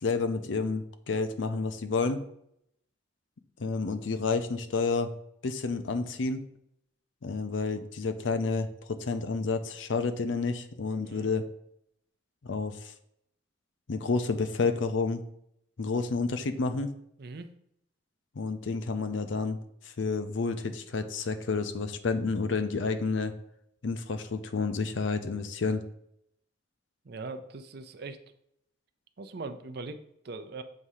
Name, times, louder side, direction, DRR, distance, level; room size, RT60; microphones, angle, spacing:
voice 1, 0.0-2.2 3.6-5.1 5.4-6.5 7.2-8.7 9.0-11.4 12.4-12.9 13.9-15.2 15.8-16.9 18.4-19.6 20.0-23.3 23.8-25.8, left 4 dB, 75° left, 9 dB, 0.6 m, -30 dB
voice 2, 17.2-17.5 27.0-28.2 29.2-30.6, right 3 dB, 55° right, 9 dB, 0.5 m, -41 dB
7.4 x 2.8 x 4.8 m, 0.74 s
head